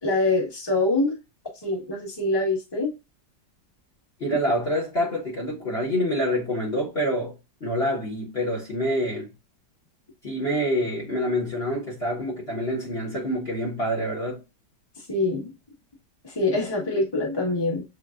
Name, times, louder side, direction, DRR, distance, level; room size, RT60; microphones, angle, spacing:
voice 1, 0.0-1.2 1.6-2.9 15.1-15.5 16.2-17.8, left 2 dB, 15° left, 1.3 m, -24 dB
voice 2, 4.2-9.3 10.2-14.4, equal, 35° left, 1.4 m, -27 dB
7.2 x 2.5 x 2.4 m
omnidirectional pair, 2.0 m